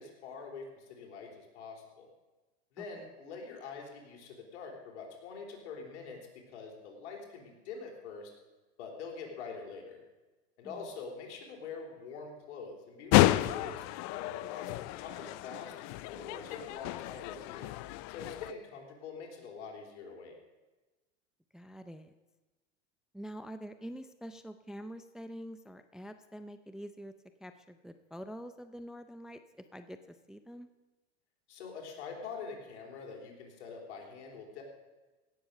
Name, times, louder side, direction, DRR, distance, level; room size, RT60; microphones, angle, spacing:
voice 1, 0.0-2.1 2.7-6.2 6.5-8.3 8.8-10.0 10.6-15.7 16.0-17.7 18.1-20.3 31.5-34.6, left 5 dB, 75° left, 1 dB, 3.7 m, -45 dB
sound 1, 13.1-18.5, left 18 dB, 50° left, 0.6 m, -31 dB
voice 2, 21.5-22.1 23.1-27.1 27.4-29.4 29.7-30.7, equal, ahead, 9 dB, 0.5 m, -46 dB
16.5 x 7.1 x 6.6 m, 1.2 s
supercardioid pair, 115°, 34 cm